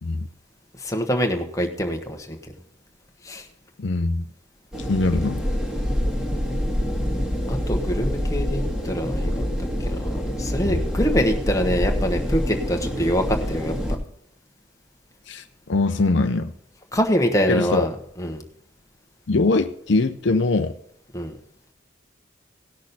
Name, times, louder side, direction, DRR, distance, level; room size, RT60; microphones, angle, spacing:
voice 1, 0.8-2.4 3.2-3.4 7.5-9.4 9.9-13.7 16.9-17.9 18.2-18.4 21.1-21.4, equal, 15° left, 2 dB, 1.2 m, -24 dB
voice 2, 3.8-4.3 4.9-5.4 10.6-10.8 15.3-15.4 15.7-16.5 17.5-17.9 19.3-20.7, left 3 dB, 65° left, 8 dB, 0.6 m, -22 dB
sound 1, 4.7-14.0, equal, 5° right, 1.7 m, -26 dB
18.0 x 6.3 x 4.1 m, 0.70 s
head